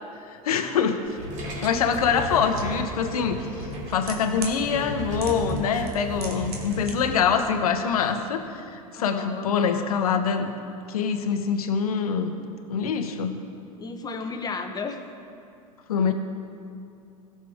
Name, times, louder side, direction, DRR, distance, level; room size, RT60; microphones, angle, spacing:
voice 1, 0.3-1.2 1.6-10.5 10.9-12.3 12.7-13.4 15.9-16.1, left 6 dB, 80° left, 7 dB, 0.9 m, -25 dB
sound 1, 1.1-7.1, right 1 dB, 40° right, 2.4 m, -34 dB
sound 2, 2.6-2.7 3.6-4.6 5.2-5.6 5.9-6.9 7.2-7.3, right 5 dB, 85° right, 1.5 m, -36 dB
voice 2, 8.9-9.5 13.8-15.0, left 4 dB, 20° left, 5 dB, 1.0 m, -33 dB
17.0 x 6.7 x 3.5 m, 2.6 s
hypercardioid pair, 95°, 19 cm